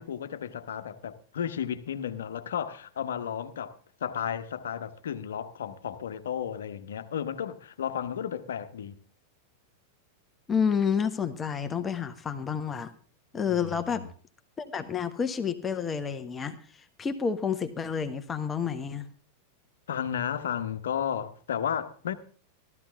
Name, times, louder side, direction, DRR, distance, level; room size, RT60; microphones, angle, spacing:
voice 1, 0.0-9.0 13.5-14.1 19.9-22.1, left 8 dB, 65° left, 1.2 m, -33 dB
voice 2, 10.5-12.9 13.3-14.0 14.6-16.6 17.0-19.1, left 6 dB, 20° left, 1.2 m, -29 dB
15.5 x 13.0 x 3.6 m
figure-of-eight pair, 90°, 0 cm